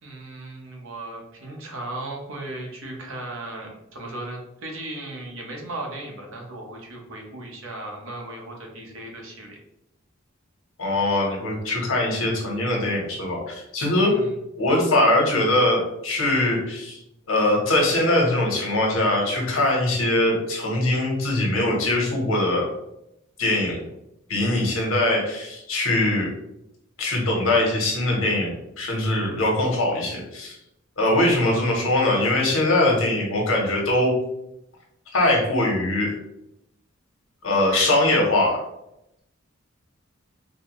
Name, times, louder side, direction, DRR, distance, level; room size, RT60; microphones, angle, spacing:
voice 1, 0.0-9.6 14.1-14.4, right 2 dB, 70° right, 0 dB, 0.9 m, -36 dB
voice 2, 10.8-14.1 14.6-17.0 17.3-22.7 23.4-23.8 24.3-26.3 27.0-30.5 31.0-34.1 35.1-36.1 37.4-38.6, left 1 dB, 85° left, -1 dB, 1.1 m, -22 dB
4.1 x 2.2 x 3.0 m, 0.83 s
head